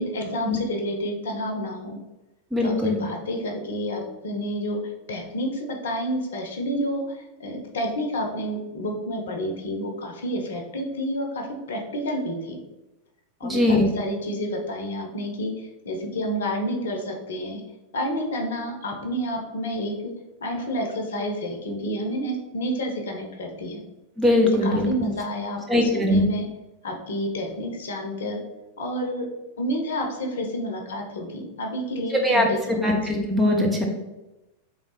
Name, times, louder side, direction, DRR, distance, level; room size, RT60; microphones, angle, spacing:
voice 1, 0.0-2.0 2.6-4.8 5.1-12.6 13.4-17.6 17.9-19.9 20.4-23.8 24.4-26.4 26.8-28.4 28.8-29.3 29.6-32.9, equal, 60° left, 3 dB, 0.8 m, -29 dB
voice 2, 2.5-3.0 13.4-13.9 24.2-25.1 25.7-26.2 32.2-32.5 32.8-33.9, left 1 dB, 10° right, 0 dB, 0.9 m, -21 dB
3.6 x 3.5 x 4.0 m, 0.99 s
figure-of-eight pair, 90°, 0 cm